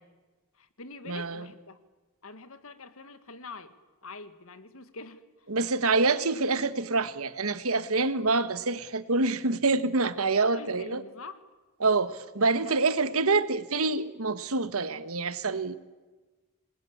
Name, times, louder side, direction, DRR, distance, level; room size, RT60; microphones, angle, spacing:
voice 1, 0.5-1.8 2.2-3.7 4.0-5.5 10.5-11.4 12.6-12.8, left 3 dB, 70° left, 1.7 m, -45 dB
voice 2, 1.1-1.5 5.5-11.0 11.8-15.8, right 3 dB, 75° right, 1.4 m, -26 dB
27.5 x 20.0 x 8.7 m
head